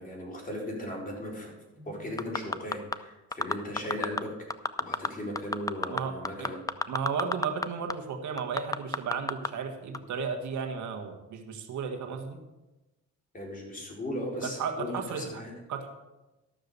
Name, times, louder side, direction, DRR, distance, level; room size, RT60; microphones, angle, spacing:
voice 1, 0.0-4.3 4.8-6.6 13.3-15.5, left 1 dB, 25° left, -2 dB, 4.2 m, -37 dB
sound 1, 2.2-3.0 3.3-4.2 4.5-5.1 5.4-7.7 7.9-8.0 8.4-9.5 9.9-10.0, left 3 dB, 10° left, 0.5 m, -29 dB
voice 2, 5.9-6.5 6.9-12.4 14.4-15.4 15.7-15.9, right 6 dB, 70° right, 5 dB, 1.6 m, -34 dB
12.5 x 6.6 x 6.8 m, 1.1 s
cardioid pair, 90°, 30 cm